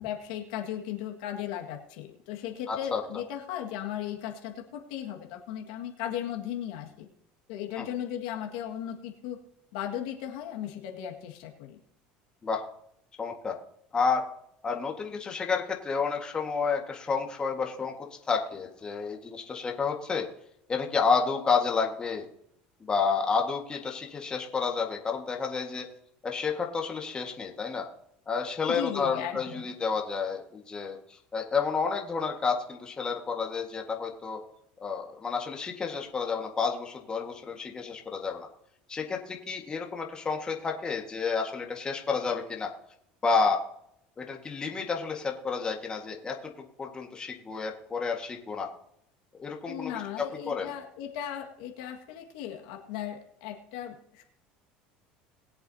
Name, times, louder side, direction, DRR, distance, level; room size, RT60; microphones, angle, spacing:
voice 1, 0.0-7.1 7.5-9.4 9.7-11.8 28.7-29.7 49.7-54.2, left 10 dB, 85° left, 2 dB, 1.9 m, -36 dB
voice 2, 2.7-3.0 7.8-7.9 12.4-12.6 13.2-13.6 13.9-14.2 14.6-17.9 18.3-20.3 20.7-22.3 22.8-25.9 26.2-27.9 28.3-34.4 34.8-38.5 38.9-42.7 43.2-43.6 44.2-46.4 46.8-48.7 49.3-49.9 50.5-50.7, left 5 dB, 20° left, 1 dB, 1.8 m, -30 dB
21.0 x 7.8 x 2.9 m, 0.75 s
supercardioid pair, 120°, 4 cm